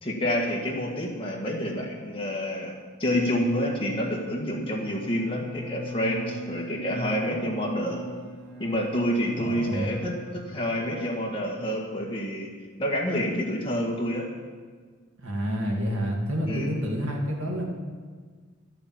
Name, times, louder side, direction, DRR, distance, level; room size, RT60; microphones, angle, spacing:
voice 1, 0.0-2.7 3.0-8.0 8.6-12.5 12.8-14.3 16.5-16.7, equal, 25° left, -1 dB, 1.7 m, -28 dB
Bowed string instrument, 4.7-11.3, equal, 45° right, 2.0 m, -40 dB
voice 2, 9.3-9.9 15.2-17.7, equal, 85° right, 0 dB, 2.2 m, -28 dB
11.5 x 6.9 x 8.6 m, 1.6 s
head